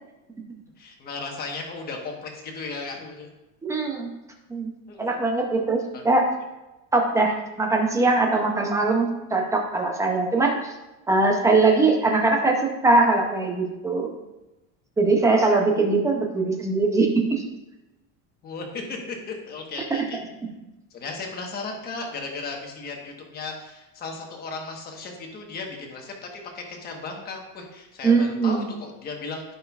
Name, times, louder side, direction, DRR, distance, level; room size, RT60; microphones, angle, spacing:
voice 1, 0.8-3.3 4.9-5.1 5.9-6.0 18.4-20.2 20.9-26.3 26.5-29.4, left 3 dB, 25° left, 1 dB, 1.2 m, -35 dB
voice 2, 3.6-4.1 4.5-4.7 5.0-6.3 6.9-10.5 11.1-12.6 12.8-14.1 15.0-17.4 19.9-20.0 28.0-28.6, right 3 dB, 10° right, 1 dB, 0.5 m, -21 dB
14.5 x 5.4 x 2.4 m, 1.0 s
cardioid pair, 175°, 40 cm